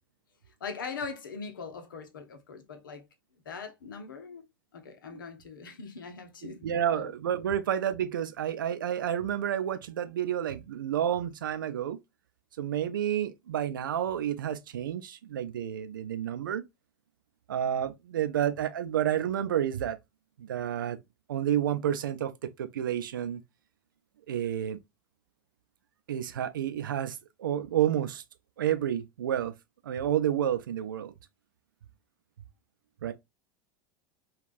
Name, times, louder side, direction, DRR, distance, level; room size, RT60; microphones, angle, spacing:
voice 1, 0.6-3.1 3.4-4.4 4.7-7.1, left 5 dB, 70° left, 0.8 m, -41 dB
voice 2, 6.4-12.0 12.6-16.6 17.5-20.0 20.4-21.0 21.3-23.4 24.3-24.8 26.1-28.2 28.6-29.5 29.8-31.1 33.0-33.1, right 10 dB, 70° right, 0.4 m, -30 dB
3.3 x 2.4 x 2.4 m
figure-of-eight pair, 85°, 11 cm